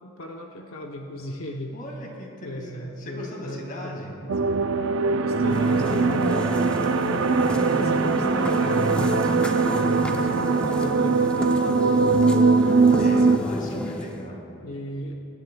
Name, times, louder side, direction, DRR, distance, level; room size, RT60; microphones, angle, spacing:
voice 1, 0.0-1.8 2.4-4.4 5.1-7.3 7.7-9.2 9.8-13.9 14.6-15.1, left 1 dB, 80° left, 1 dB, 0.8 m, -36 dB
voice 2, 1.7-4.2 6.2-6.8 9.6-9.9 13.0-14.5, left 1 dB, 45° left, -1 dB, 2.2 m, -39 dB
sound 1, 4.3-13.4, right 4 dB, 70° right, 0.5 m, -21 dB
sound 2, 5.3-14.3, equal, 5° left, 0.6 m, -31 dB
23.5 x 11.0 x 2.3 m, 2.8 s
head